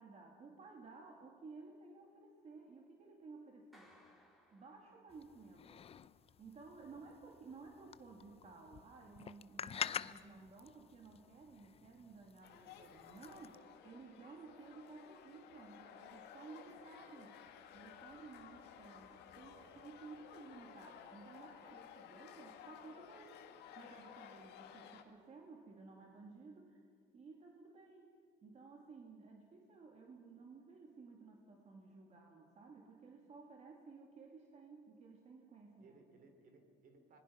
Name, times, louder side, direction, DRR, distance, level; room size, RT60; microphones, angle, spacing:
voice 1, 0.0-4.0 4.5-5.8 6.4-17.4 17.7-26.8 27.1-28.1 28.4-36.0, right 4 dB, 40° right, 1 dB, 2.5 m, -56 dB
Clapping, 3.7-5.5, left 1 dB, ahead, 4.4 m, -66 dB
sound 1, 5.1-13.6, left 8 dB, 35° left, 0.5 m, -48 dB
sound 2, 12.4-25.0, left 9 dB, 85° left, 1.9 m, -56 dB
voice 2, 19.5-19.8 35.8-37.2, right 3 dB, 55° right, 5 dB, 3.6 m, -64 dB
25.5 x 20.5 x 5.7 m, 2.2 s
cardioid pair, 110°, 17 cm